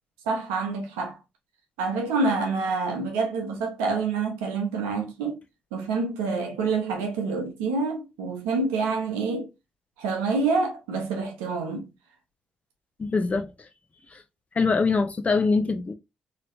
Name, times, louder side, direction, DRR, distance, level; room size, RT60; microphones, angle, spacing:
voice 1, 0.3-1.2 1.8-5.4 5.7-9.5 10.0-11.9, right 4 dB, 85° right, 0.8 m, -27 dB
voice 2, 13.0-13.5 14.6-15.9, left 4 dB, 40° left, 0.7 m, -23 dB
3.1 x 2.9 x 2.8 m
hypercardioid pair, 45°, 4 cm